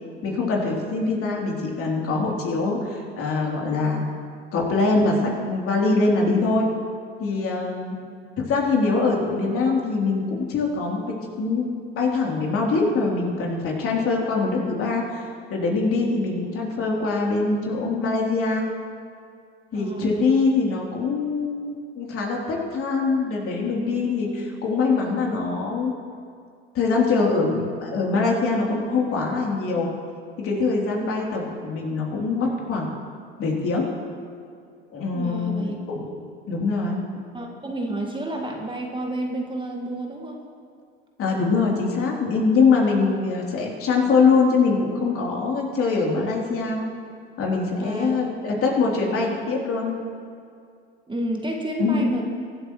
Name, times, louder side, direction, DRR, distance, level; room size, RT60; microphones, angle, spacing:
voice 1, 0.2-4.0 4.5-6.7 7.2-8.0 8.4-15.2 15.5-18.7 19.7-25.9 26.7-29.9 30.4-32.9 33.4-33.9 34.9-36.1 36.5-37.0 41.2-46.8 47.4-50.0 51.8-52.1, left 4 dB, 45° left, -2 dB, 3.3 m, -23 dB
voice 2, 19.7-20.2 35.1-35.8 36.1-36.2 37.3-40.4 47.8-48.6 49.1-49.3 51.1-52.3, right 1 dB, 15° right, 1 dB, 1.7 m, -30 dB
24.0 x 12.0 x 3.1 m, 2.3 s
hypercardioid pair, 65°, 31 cm